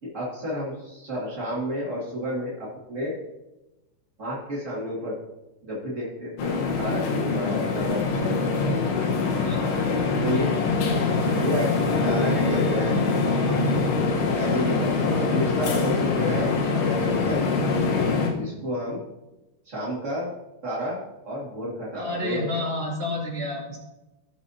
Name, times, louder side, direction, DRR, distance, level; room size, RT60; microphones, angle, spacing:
voice 1, 0.0-3.1 4.2-5.2 5.6-8.7 10.2-10.5 11.3-13.0 14.3-17.7 18.3-19.0 19.6-20.3 20.6-22.6, equal, 60° right, -6 dB, 0.8 m, -31 dB
sound 1, 6.4-18.3, left 4 dB, 80° left, 3.4 m, -24 dB
voice 2, 21.9-23.8, left 1 dB, 20° right, -4 dB, 1.7 m, -30 dB
17.0 x 6.8 x 2.8 m, 1.0 s
omnidirectional pair, 5.2 m